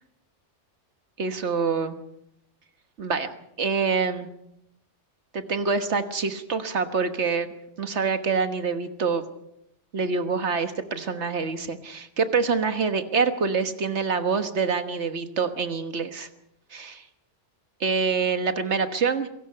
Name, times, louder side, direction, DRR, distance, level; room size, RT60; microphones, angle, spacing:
voice 1, 1.2-2.0 3.0-3.3 3.6-4.3 5.3-7.5 7.8-9.2 9.9-16.3 16.7-17.0 17.8-19.3, right 5 dB, 70° right, 9 dB, 1.6 m, -26 dB
27.0 x 17.5 x 5.7 m, 0.79 s
omnidirectional pair, 1.2 m